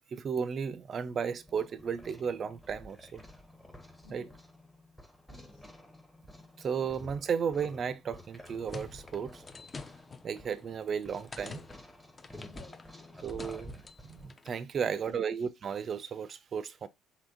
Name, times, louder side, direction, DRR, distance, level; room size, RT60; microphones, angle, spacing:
voice 1, 0.1-3.2 4.1-4.3 6.6-9.4 10.2-11.6 13.2-16.9, right 6 dB, 45° right, 0.3 m, -34 dB
sound 1, 1.1-14.3, left 1 dB, 5° left, 0.8 m, -51 dB
voice 2, 4.0-4.4 5.3-5.6 6.3-6.5 12.5-13.2 14.8-15.3, left 1 dB, 75° left, 1.4 m, -56 dB
sound 2, 8.2-14.6, left 4 dB, 30° left, 0.4 m, -49 dB
3.4 x 2.8 x 2.5 m
hypercardioid pair, 55°, 0 cm